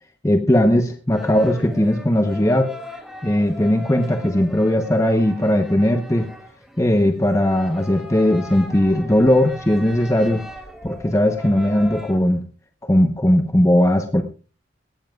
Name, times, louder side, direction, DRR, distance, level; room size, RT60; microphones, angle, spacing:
voice 1, 0.2-2.7 3.2-6.3 6.8-10.4 10.8-12.4 12.8-14.2, left 1 dB, 15° left, 5 dB, 0.9 m, -18 dB
sound 1, 1.1-12.2, left 1 dB, ahead, 2.6 m, -39 dB
18.5 x 15.5 x 2.4 m, 0.35 s
head